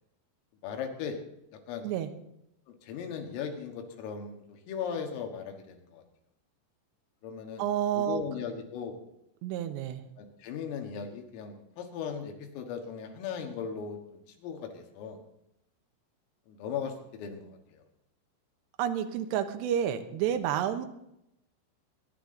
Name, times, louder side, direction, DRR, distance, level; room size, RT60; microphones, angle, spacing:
voice 1, 0.6-1.2 1.7-1.9 2.8-6.0 7.2-7.6 8.0-9.0 10.2-15.2 16.5-17.8, left 7 dB, 80° left, 4 dB, 4.3 m, -38 dB
voice 2, 7.6-8.2 9.4-10.0 18.8-20.9, right 10 dB, 75° right, 7 dB, 2.8 m, -30 dB
22.5 x 11.5 x 3.9 m, 0.81 s
omnidirectional pair, 5.9 m